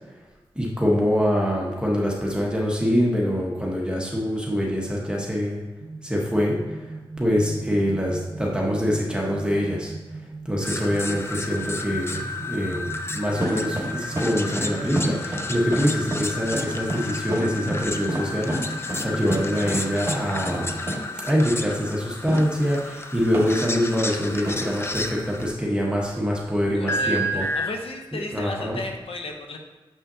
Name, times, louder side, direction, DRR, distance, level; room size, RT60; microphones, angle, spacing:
voice 1, 0.5-5.6 6.0-6.6 7.2-9.9 10.4-20.8 21.2-27.4 28.1-28.8, equal, 10° right, -3 dB, 1.2 m, -24 dB
sound 1, 5.8-20.8, right 3 dB, 85° right, 0.6 m, -39 dB
sound 2, 10.6-25.5 26.9-27.7, left 1 dB, 25° left, 0.5 m, -31 dB
sound 3, 13.4-13.9 14.2-14.3 14.6-14.7 14.9-15.4 15.7-15.8 16.1-16.2 16.5-16.6 16.9-17.0 17.3-17.4 17.7-17.8 18.1-18.2 18.5-18.6 18.9-19.0 19.3-19.4 19.7-19.8 20.1-20.2 20.5-20.6 20.9-21.0 22.3-22.4 23.3-23.5 24.4-24.5, right 1 dB, 30° right, 1.7 m, -28 dB
voice 2, 26.7-29.6, left 2 dB, 75° left, 3 dB, 0.8 m, -34 dB
7.3 x 5.6 x 2.7 m, 1.2 s
cardioid pair, 65°, 10 cm